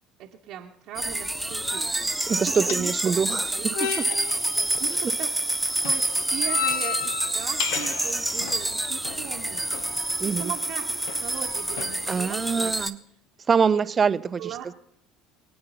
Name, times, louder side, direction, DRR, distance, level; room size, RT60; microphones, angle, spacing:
voice 1, 0.2-3.9 4.8-5.3 5.7-9.7 10.2-10.9 11.2-12.7 13.7-13.8 14.4-14.7, right 11 dB, 55° right, 0.9 m, -39 dB
sound 1, 0.9-12.9, right 2 dB, 5° right, 1.0 m, -28 dB
sound 2, 1.4-12.9, left 9 dB, 70° left, 0.6 m, -36 dB
voice 2, 2.3-3.5 4.0-4.1 10.2-10.5 12.1-13.0 13.5-14.7, right 6 dB, 30° right, 0.6 m, -24 dB
22.5 x 8.7 x 5.7 m
hypercardioid pair, 65°, 0 cm